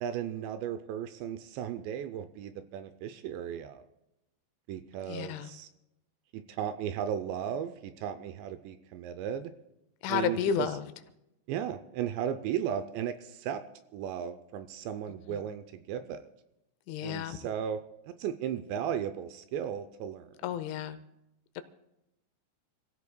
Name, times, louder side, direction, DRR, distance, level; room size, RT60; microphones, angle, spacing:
voice 1, 0.0-3.8 4.7-5.7 6.3-9.5 10.1-10.7 11.5-13.6 13.9-16.3 17.0-17.8 18.2-20.3, right 9 dB, 80° right, 10 dB, 2.7 m, -35 dB
voice 2, 5.1-5.5 10.0-10.8 15.3-15.4 16.9-17.4 20.4-21.0 21.6-21.7, left 9 dB, 85° left, 11 dB, 3.2 m, -31 dB
28.5 x 15.5 x 2.2 m, 0.88 s
omnidirectional pair, 5.4 m